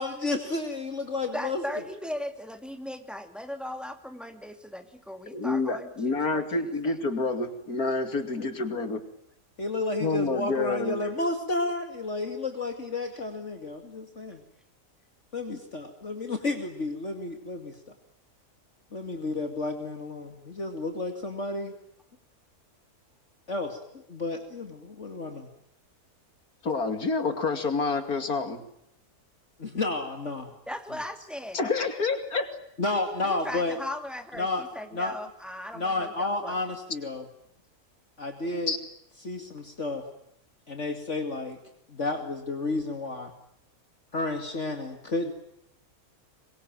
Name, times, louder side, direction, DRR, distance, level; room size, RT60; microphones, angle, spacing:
voice 1, 0.0-1.6 8.4-8.5 9.6-14.4 15.3-17.8 18.9-21.7 23.5-25.5 29.6-30.5 32.8-33.8 34.4-34.7 34.9-35.1 35.7-37.3 38.2-38.7 39.2-40.0 40.7-41.6 41.9-43.3 44.1-45.3, left 2 dB, 50° left, 6 dB, 2.8 m, -31 dB
voice 2, 1.3-6.9 30.7-31.7 33.2-36.6, left 1 dB, ahead, 7 dB, 2.6 m, -38 dB
voice 3, 5.3-9.0 10.0-11.0 26.6-28.6 31.5-32.5 38.5-38.8, left 3 dB, 80° left, 9 dB, 3.2 m, -28 dB
26.0 x 22.5 x 9.0 m, 0.76 s
omnidirectional pair, 1.6 m